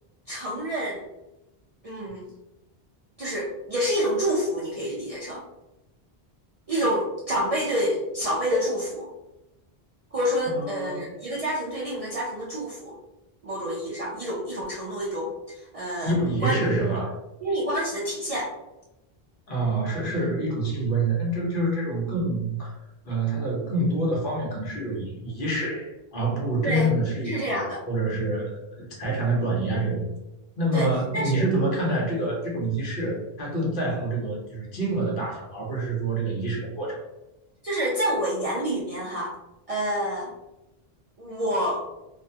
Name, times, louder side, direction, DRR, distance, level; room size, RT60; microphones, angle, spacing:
voice 1, 0.3-1.1 1.8-2.2 3.2-5.5 6.7-9.1 10.1-13.0 13.4-16.5 16.9-17.1 17.4-18.5 26.6-26.9 27.2-27.8 30.7-31.4 37.6-39.3 39.7-40.3 41.2-41.8, equal, 50° right, -5 dB, 0.4 m, -28 dB
voice 2, 10.5-11.1 16.0-17.1 19.5-22.8 23.1-27.6 27.9-30.1 30.6-37.0, right 2 dB, 60° left, -3 dB, 0.9 m, -27 dB
2.5 x 2.2 x 2.6 m, 0.95 s
omnidirectional pair, 1.0 m